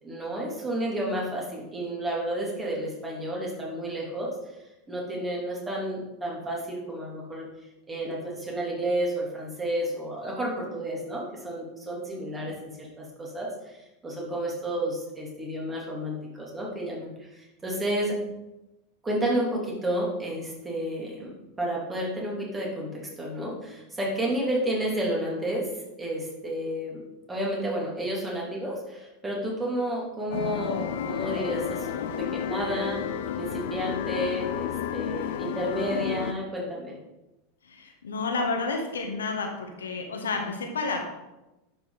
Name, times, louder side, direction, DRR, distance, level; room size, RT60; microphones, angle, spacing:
voice 1, 0.0-4.3 4.9-7.5 7.9-13.5 14.0-18.2 19.0-25.7 26.0-27.0 27.3-31.9 32.2-33.0 33.3-36.9, right 1 dB, 15° right, -3 dB, 3.1 m, -31 dB
sound 1, 30.3-36.3, left 8 dB, 60° left, 0.7 m, -31 dB
voice 2, 37.6-41.0, left 3 dB, 75° left, 3 dB, 1.4 m, -31 dB
10.5 x 5.7 x 4.2 m, 1.0 s
figure-of-eight pair, 85°, 0 cm